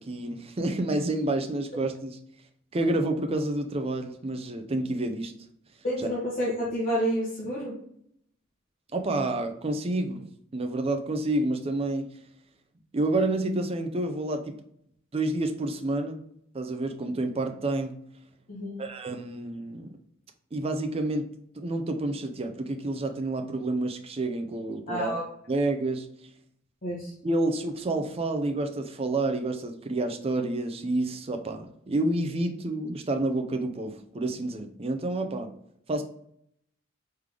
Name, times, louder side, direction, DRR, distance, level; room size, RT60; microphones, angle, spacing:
voice 1, 0.0-2.2 2.7-5.3 6.0-6.1 8.9-10.2 10.5-12.1 12.9-14.5 15.1-16.2 16.5-18.0 18.8-20.0 20.5-21.3 21.6-25.2 25.5-26.1 27.2-35.5 35.9-36.0, right 2 dB, 30° right, 6 dB, 0.4 m, -29 dB
voice 2, 5.8-7.8 18.5-18.8 24.9-25.2 26.8-27.1, equal, 45° left, -6 dB, 1.0 m, -29 dB
3.6 x 3.3 x 3.3 m, 0.70 s
head